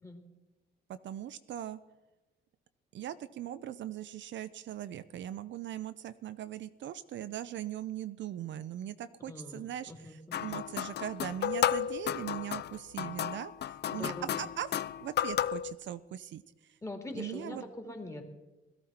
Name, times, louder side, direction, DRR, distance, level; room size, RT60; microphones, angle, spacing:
voice 1, 0.9-1.8 2.9-14.7 15.0-16.4 17.1-17.6, right 11 dB, 65° right, 13 dB, 0.6 m, -40 dB
voice 2, 9.3-10.5 13.9-14.4 16.8-18.2, left 2 dB, 15° left, 3 dB, 2.6 m, -43 dB
sound 1, 10.3-15.7, left 10 dB, 60° left, 0.6 m, -33 dB
17.5 x 13.5 x 4.3 m, 1.1 s
cardioid pair, 90°, 20 cm